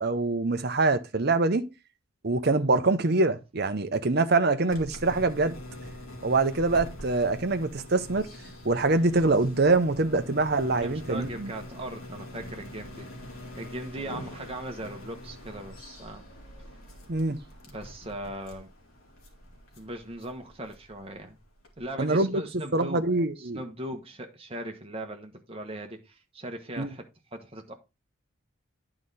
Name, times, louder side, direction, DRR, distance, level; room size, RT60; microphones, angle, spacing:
voice 1, 0.0-1.6 2.2-5.6 6.2-8.3 8.6-11.5 17.1-17.4 22.0-22.4 22.7-23.6 26.8-26.9, right 3 dB, 50° right, 0.8 m, -24 dB
sound 1, 4.7-21.9, left 1 dB, 85° left, 2.3 m, -44 dB
voice 2, 10.7-13.1 13.6-16.3 17.7-18.7 19.8-21.4 21.8-23.0 23.4-27.0 27.3-27.7, right 1 dB, 25° right, 1.2 m, -39 dB
9.8 x 4.9 x 4.1 m
head